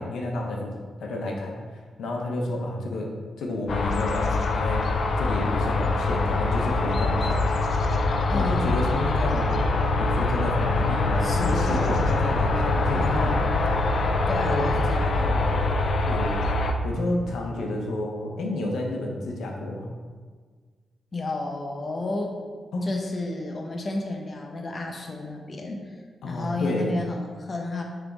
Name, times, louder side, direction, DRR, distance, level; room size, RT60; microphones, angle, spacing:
voice 1, 0.0-1.6 2.0-3.1 3.4-4.8 5.2-7.4 8.3-13.5 14.4-14.7 16.0-19.9 22.7-22.9 26.2-26.9, left 1 dB, 85° left, 0 dB, 1.0 m, -30 dB
sound 1, 3.7-16.7, left 2 dB, 65° left, 0.6 m, -24 dB
voice 2, 8.3-8.8 11.2-12.1 12.9-13.4 14.3-15.6 21.1-22.4 22.8-26.0 26.2-27.8, left 2 dB, 40° left, 2 dB, 0.9 m, -32 dB
9.3 x 3.6 x 4.0 m, 1.5 s
cardioid pair, 80°, 0 cm